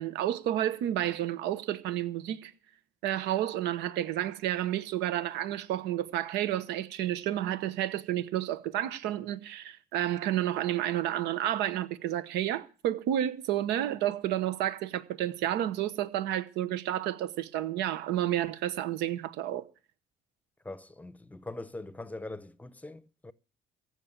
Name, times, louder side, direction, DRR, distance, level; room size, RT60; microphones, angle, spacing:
voice 1, 0.0-2.5 3.0-19.6, right 12 dB, 90° right, 1.0 m, -31 dB
voice 2, 20.6-23.3, left 2 dB, 10° left, 0.8 m, -42 dB
15.0 x 6.3 x 8.9 m
cardioid pair, 110°, 17 cm